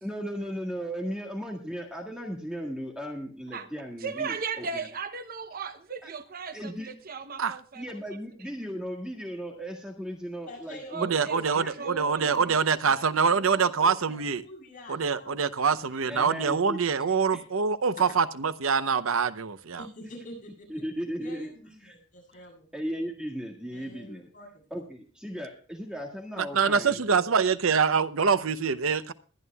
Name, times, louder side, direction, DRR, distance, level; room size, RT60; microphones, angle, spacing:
voice 1, 0.0-4.9 6.0-6.1 6.5-6.9 7.7-11.7 16.0-16.8 17.1-17.4 20.7-21.5 21.8-22.0 22.7-24.3 24.7-27.2, equal, 5° right, 1.7 m, -36 dB
voice 2, 4.0-7.8 10.9-12.4 12.9-13.1, right 5 dB, 45° right, 0.8 m, -36 dB
voice 3, 10.5-12.7 13.3-16.0 18.1-18.2 19.8-20.8 21.2-22.7 23.7-24.7, left 1 dB, 40° left, 7.7 m, -46 dB
voice 4, 11.0-14.4 14.9-19.8 26.4-29.1, right 5 dB, 85° right, 0.7 m, -25 dB
22.0 x 11.0 x 2.3 m
head